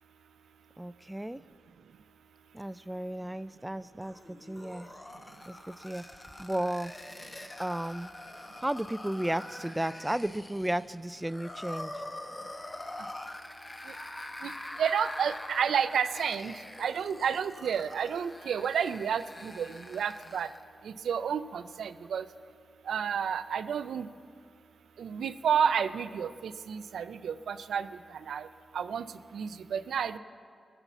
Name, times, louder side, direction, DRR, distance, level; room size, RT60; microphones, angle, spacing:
voice 1, 0.8-1.4 2.5-4.9 5.5-6.0 6.4-6.9 7.6-8.1 8.6-12.0, right 1 dB, 15° right, 15 dB, 0.3 m, -34 dB
sound 1, 4.0-20.6, left 1 dB, 30° left, 1.0 m, -44 dB
voice 2, 14.8-16.5 16.8-20.5 20.8-22.3 22.9-24.1 25.0-27.9 28.3-28.5 28.7-29.1 29.3-30.2, right 7 dB, 90° right, 12 dB, 0.4 m, -30 dB
20.0 x 6.9 x 7.1 m, 2.2 s
cardioid pair, 45°, 0 cm